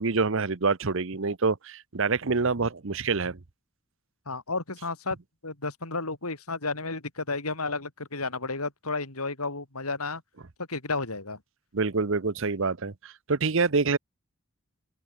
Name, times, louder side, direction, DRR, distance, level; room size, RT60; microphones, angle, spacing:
voice 1, 0.0-3.4 11.7-14.0, right 4 dB, 60° right, 0.9 m, -26 dB
voice 2, 4.3-5.2 5.4-10.2 10.7-11.4, left 3 dB, 90° left, 4.5 m, -32 dB
open air
head